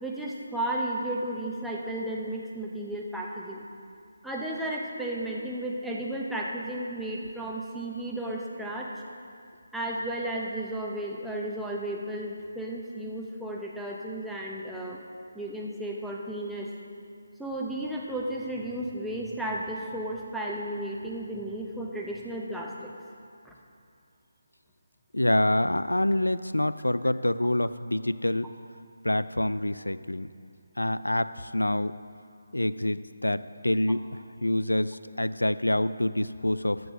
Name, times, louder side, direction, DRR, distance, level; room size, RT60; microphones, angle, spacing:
voice 1, 0.0-3.6 4.2-8.9 9.7-15.0 15.3-16.7 17.4-22.9 23.4-23.5, right 1 dB, ahead, -4 dB, 0.8 m, -33 dB
voice 2, 25.1-28.5 29.0-30.3 30.8-31.9 32.5-34.0 34.4-36.8, left 1 dB, 90° left, 15 dB, 0.3 m, -26 dB
14.0 x 4.7 x 6.2 m, 2.3 s
figure-of-eight pair, 155°, 0 cm